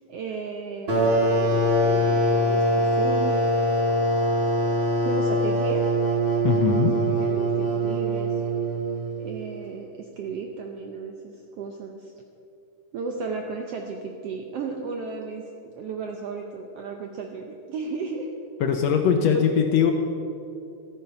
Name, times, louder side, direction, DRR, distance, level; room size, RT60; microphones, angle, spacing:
voice 1, 0.1-3.4 5.0-5.8 6.7-8.4 9.2-12.1 12.9-18.3 19.3-19.5, right 4 dB, 75° right, 3 dB, 1.4 m, -34 dB
sound 1, 0.9-9.3, right 1 dB, 40° right, 0.8 m, -23 dB
voice 2, 6.4-6.9 18.6-19.9, left 7 dB, 70° left, 4 dB, 1.7 m, -21 dB
14.0 x 9.0 x 5.7 m, 2.7 s
omnidirectional pair, 3.6 m